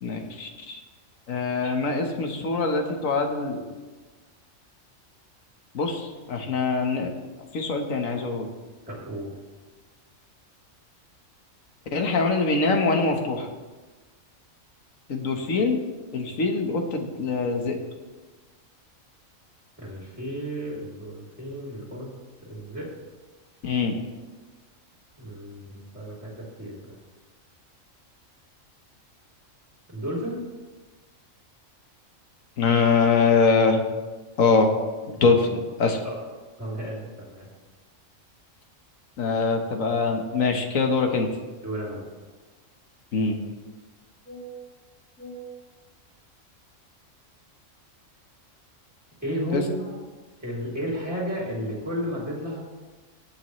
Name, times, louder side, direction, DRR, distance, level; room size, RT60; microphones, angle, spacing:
voice 1, 0.0-0.8 1.3-3.6 5.7-7.1 7.5-8.5 11.9-13.5 15.1-15.8 16.1-17.8 23.6-24.0 32.6-33.8 34.4-34.7 35.1-36.0 39.2-41.3 43.1-43.4 49.5-49.6, left 4 dB, 80° left, 4 dB, 1.7 m, -23 dB
voice 2, 8.9-9.3 19.8-22.1 22.5-22.9 25.2-26.7 29.9-30.4 36.0-36.2 36.6-37.5 41.6-42.1 44.2-44.5 45.2-45.4 49.2-49.9 50.4-52.6, equal, 5° right, -4 dB, 2.9 m, -33 dB
19.5 x 7.5 x 3.2 m, 1.3 s
omnidirectional pair, 1.4 m